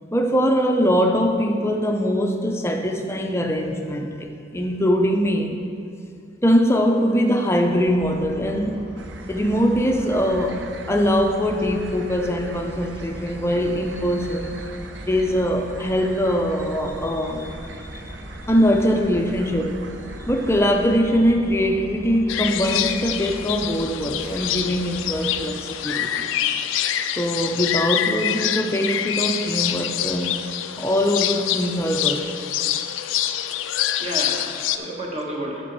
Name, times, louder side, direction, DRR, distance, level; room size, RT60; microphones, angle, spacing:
voice 1, 0.1-5.6 6.4-8.9 9.3-14.7 15.0-18.2 18.5-19.8 20.3-26.3 27.2-30.3 30.8-32.3, equal, 15° left, 4 dB, 0.5 m, -22 dB
sound 1, 7.9-25.5, left 1 dB, 5° right, 1.2 m, -40 dB
sound 2, 9.0-21.0, right 3 dB, 60° right, 0.5 m, -41 dB
sound 3, 22.3-34.8, left 11 dB, 75° left, 0.4 m, -26 dB
voice 2, 33.6-35.6, right 1 dB, 30° right, -2 dB, 1.3 m, -31 dB
12.5 x 5.1 x 4.6 m, 2.5 s
head